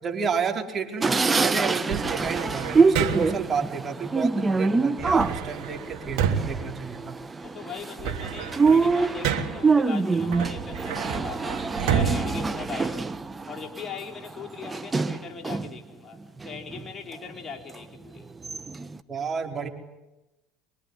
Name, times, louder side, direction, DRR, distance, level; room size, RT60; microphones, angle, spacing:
voice 1, 0.0-7.1 19.1-19.7, right 6 dB, 35° right, 4.6 m, -31 dB
sound 1, 1.0-15.8 16.2-17.2 17.7-17.8 18.2-19.0, right 4 dB, 20° right, 1.3 m, -25 dB
sound 2, 1.9-3.5 5.0-7.5 7.8-9.8 10.3-13.3, right 8 dB, 70° right, 3.0 m, -30 dB
voice 2, 7.4-13.2 13.5-16.2 16.4-18.3, left 6 dB, 30° left, 4.3 m, -40 dB
25.0 x 24.0 x 9.8 m
hypercardioid pair, 75°, 0 cm